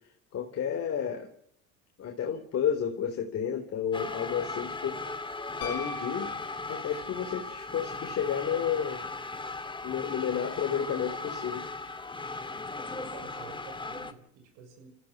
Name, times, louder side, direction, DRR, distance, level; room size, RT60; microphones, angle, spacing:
voice 1, 0.3-1.3 2.0-5.0 5.6-6.3 6.7-9.0 9.8-11.7, left 8 dB, 40° left, 3 dB, 3.6 m, -31 dB
sound 1, 3.9-14.1, left 3 dB, 15° left, 2.1 m, -37 dB
Piano, 5.6-7.2 9.5-9.6, left 2 dB, 65° left, 4.0 m, -41 dB
voice 2, 12.8-14.9, right 7 dB, 80° right, 7 dB, 7.2 m, -50 dB
29.0 x 15.5 x 6.4 m, 0.71 s
supercardioid pair, 95°, 36 cm